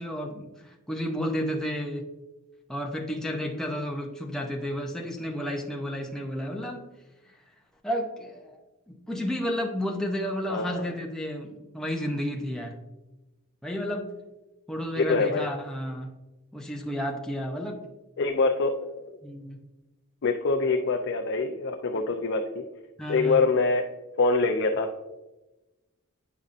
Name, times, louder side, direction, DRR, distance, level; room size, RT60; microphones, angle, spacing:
voice 1, 0.0-2.1 2.7-6.9 7.3-7.4 7.8-8.6 8.9-12.8 13.6-14.1 14.7-16.2 16.5-17.8 19.2-19.6 21.9-22.0 23.0-23.4, equal, 5° left, 0 dB, 0.6 m, -32 dB
voice 2, 10.5-10.8 15.0-15.5 18.2-19.2 20.2-22.6 23.1-23.9 24.2-24.9, left 3 dB, 60° left, 3 dB, 0.5 m, -25 dB
8.5 x 5.3 x 2.5 m, 1.0 s
head